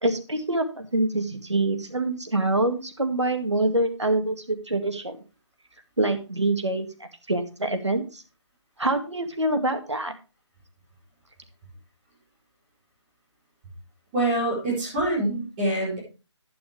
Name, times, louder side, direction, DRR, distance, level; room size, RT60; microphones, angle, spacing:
voice 1, 0.0-5.2 6.0-8.2 8.8-10.1, right 2 dB, 75° right, 6 dB, 2.0 m, -25 dB
voice 2, 14.1-16.0, right 1 dB, 15° right, -6 dB, 4.3 m, -25 dB
11.0 x 8.8 x 3.3 m, 0.32 s
figure-of-eight pair, 155°, 15 cm